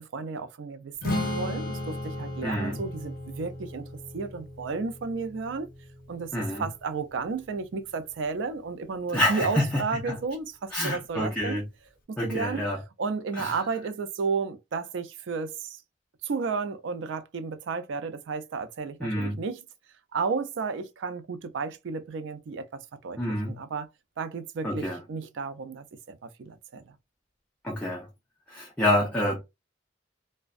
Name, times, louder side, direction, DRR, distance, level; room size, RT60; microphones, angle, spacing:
voice 1, 0.0-3.8 4.1-5.7 6.1-6.3 6.6-11.6 12.1-12.6 13.0-15.8 16.2-19.6 20.1-23.2 23.5-23.9 24.2-26.9, right 4 dB, 80° right, 0.4 m, -32 dB
Strum, 1.0-7.3, left 2 dB, 50° left, 0.9 m, -36 dB
voice 2, 2.4-2.8 6.3-6.7 9.1-10.2 10.7-11.7 12.2-12.8 13.3-13.7 19.0-19.4 23.2-23.6 24.6-25.0 27.6-28.1 28.5-29.4, left 1 dB, 10° left, 0.6 m, -28 dB
2.5 x 2.1 x 2.3 m
head